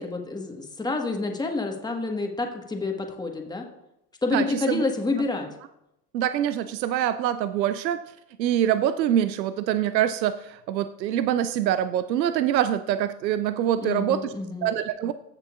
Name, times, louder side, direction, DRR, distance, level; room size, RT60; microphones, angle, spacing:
voice 1, 0.0-3.7 4.2-5.5 13.8-14.7, left 3 dB, 10° left, 3 dB, 1.4 m, -28 dB
voice 2, 4.3-4.8 6.1-8.0 8.4-14.3 14.6-15.1, right 11 dB, 85° right, 12 dB, 0.6 m, -25 dB
15.5 x 6.7 x 2.4 m, 0.84 s
hypercardioid pair, 85°, 49 cm